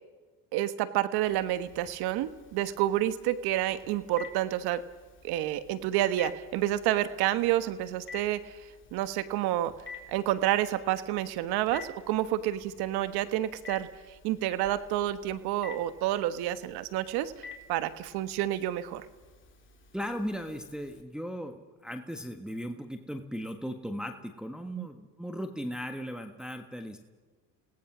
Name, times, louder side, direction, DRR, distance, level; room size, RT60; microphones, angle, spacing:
voice 1, 0.5-4.8 5.2-8.6 8.9-9.7 10.1-19.1 24.7-24.9, right 13 dB, 75° right, 12 dB, 1.4 m, -29 dB
Telephone, 1.2-21.0, left 4 dB, 30° left, 3.3 m, -51 dB
voice 2, 19.9-27.0, equal, ahead, 5 dB, 1.5 m, -37 dB
28.5 x 18.0 x 6.2 m, 1.3 s
supercardioid pair, 90°, 39 cm